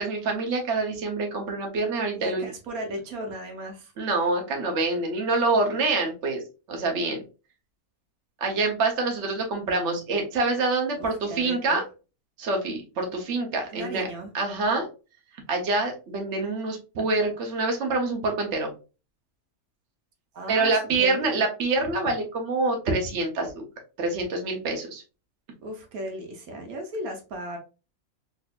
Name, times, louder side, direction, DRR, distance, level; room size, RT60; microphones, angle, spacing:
voice 1, 0.0-2.5 4.0-6.4 6.7-7.2 8.4-11.8 12.4-14.1 14.3-14.9 15.5-18.7 20.5-23.6 24.0-25.0, right 3 dB, 55° right, 2 dB, 1.2 m, -26 dB
voice 2, 2.1-3.9 9.5-10.1 11.0-11.8 13.7-14.3 20.3-20.7 21.0-21.4 25.6-27.6, right 1 dB, 80° right, 3 dB, 1.3 m, -36 dB
3.9 x 2.8 x 2.4 m, 0.31 s
omnidirectional pair, 1.5 m